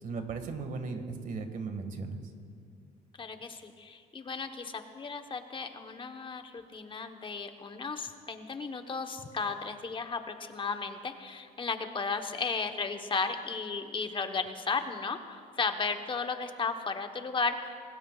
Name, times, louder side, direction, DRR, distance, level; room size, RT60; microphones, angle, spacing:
voice 1, 0.0-2.2, right 4 dB, 50° right, 6 dB, 1.8 m, -37 dB
voice 2, 3.2-15.2 15.6-17.7, left 4 dB, 30° left, 6 dB, 1.0 m, -34 dB
25.5 x 19.0 x 2.4 m, 2.3 s
cardioid pair, 110°, 17 cm